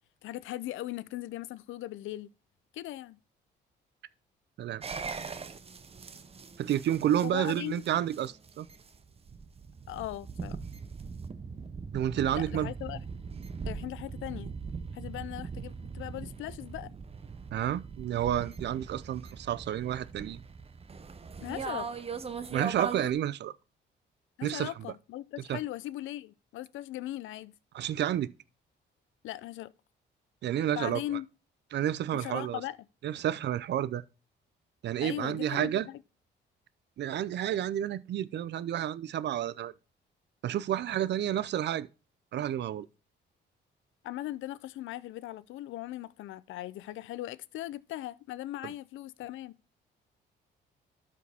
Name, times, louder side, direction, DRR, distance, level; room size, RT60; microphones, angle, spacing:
voice 1, 0.2-2.3 2.7-3.2 7.2-7.8 9.9-10.6 12.3-13.0 13.7-14.5 14.9-16.9 21.4-22.0 24.4-27.5 29.2-29.7 30.8-31.3 32.1-32.8 35.0-36.0 44.0-49.5, left 15 dB, 80° left, 0.5 m, -39 dB
sound 1, 4.8-23.1, right 5 dB, 30° right, 0.7 m, -40 dB
voice 2, 6.6-8.7 11.9-12.7 17.5-20.4 22.5-23.5 24.4-24.7 25.5-25.6 27.7-28.3 30.4-31.0 31.7-32.6 33.0-34.0 34.8-35.9 37.0-39.7 40.4-41.9 42.3-42.9 48.6-48.7, right 11 dB, 60° right, 0.5 m, -30 dB
12.0 x 5.0 x 3.5 m
cardioid pair, 90°, 20 cm